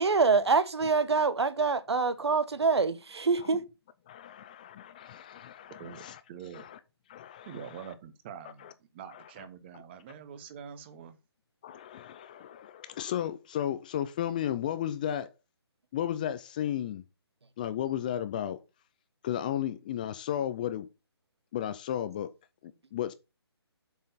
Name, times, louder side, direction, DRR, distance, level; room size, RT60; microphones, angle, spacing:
voice 1, 0.0-3.6, right 4 dB, 75° right, 1.0 m, -25 dB
voice 2, 4.1-6.2 6.5-6.8 7.1-7.8 8.6-8.7 9.1-9.3 11.6-15.3 15.9-17.0 17.6-18.6 19.2-20.9 21.5-22.3 22.6-23.1, left 10 dB, 20° left, 0.4 m, -34 dB
voice 3, 6.3-6.6 7.4-11.2, right 8 dB, 25° right, 1.1 m, -45 dB
7.7 x 5.5 x 5.6 m
figure-of-eight pair, 155°, 14 cm